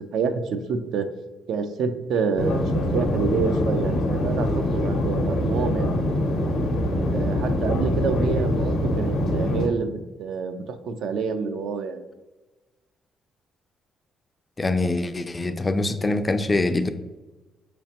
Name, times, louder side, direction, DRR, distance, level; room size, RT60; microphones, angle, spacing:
voice 1, 0.1-0.4 0.7-1.1 1.5-2.7 2.9-5.9 7.1-12.0, right 5 dB, 75° right, 8 dB, 0.4 m, -27 dB
sound 1, 2.4-9.7, left 1 dB, 85° left, 0.6 m, -24 dB
voice 2, 14.6-16.9, left 2 dB, 25° left, 9 dB, 0.3 m, -24 dB
4.8 x 3.1 x 2.8 m, 1.1 s
cardioid pair, 90°, 0 cm